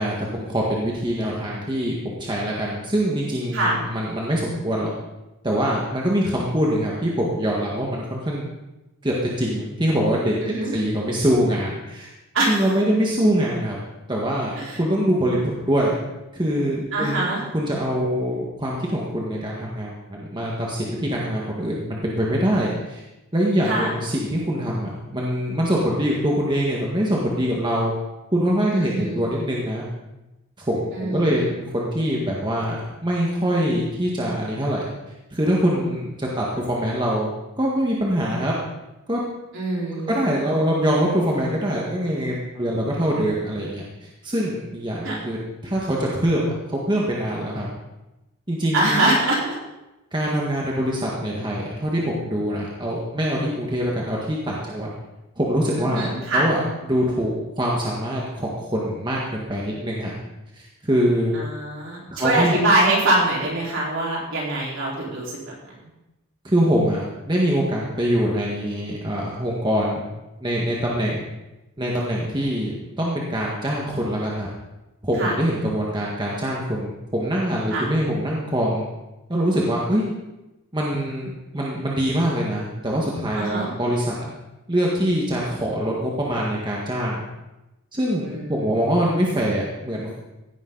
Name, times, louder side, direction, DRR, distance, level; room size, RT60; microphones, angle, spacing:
voice 1, 0.0-4.9 5.4-8.5 9.0-10.3 10.7-12.1 12.5-13.8 14.1-15.9 16.3-23.0 23.3-27.9 28.3-29.9 30.6-34.9 35.3-37.3 37.6-38.5 39.1-39.2 40.1-43.8 44.2-45.4 45.6-47.7 48.5-49.0 50.1-54.9 55.4-60.1 60.6-61.3 62.1-62.6 66.4-70.1 70.4-71.3 71.8-74.5 75.0-78.8 79.3-80.1 80.7-84.3 84.7-87.2 87.9-90.2, equal, 20° right, -3 dB, 1.7 m, -24 dB
voice 2, 10.4-10.7 12.3-12.6 14.6-14.8 16.9-17.4 23.6-23.9 28.7-29.2 30.9-31.5 39.5-40.2 45.0-45.2 48.7-49.6 55.8-56.5 61.3-65.9 75.2-75.3 77.7-77.9 83.3-83.7 88.3-88.6, right 2 dB, 60° right, -4 dB, 4.5 m, -23 dB
16.5 x 10.5 x 4.1 m, 0.98 s
head